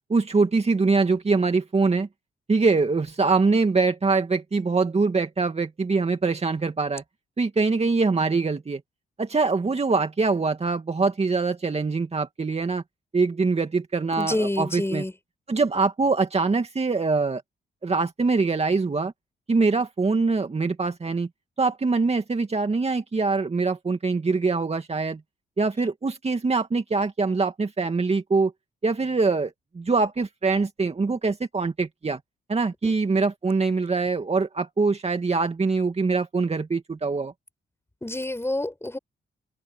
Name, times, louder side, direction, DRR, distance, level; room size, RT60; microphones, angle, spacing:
voice 1, 0.1-2.1 2.5-7.0 7.4-8.8 9.2-12.8 13.1-15.0 15.5-17.4 17.8-19.1 19.5-21.3 21.6-25.2 25.6-28.5 28.8-32.2 32.5-37.3, right 4 dB, 35° right, 2.3 m, -23 dB
voice 2, 14.2-15.1 32.8-32.9 38.0-39.0, left 1 dB, 15° left, 6.8 m, -28 dB
cardioid pair, 70°, 19 cm